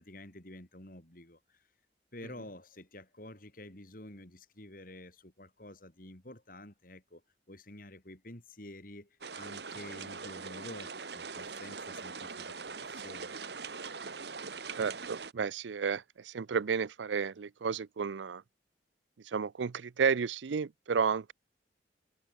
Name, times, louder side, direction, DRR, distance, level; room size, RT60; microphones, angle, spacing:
voice 1, 0.0-1.7 2.1-7.2 7.5-13.3, left 1 dB, 50° left, 5.3 m, -49 dB
sound 1, 9.2-15.3, right 5 dB, 65° right, 1.7 m, -42 dB
voice 2, 14.8-18.4 19.3-21.3, right 6 dB, 85° right, 0.5 m, -32 dB
head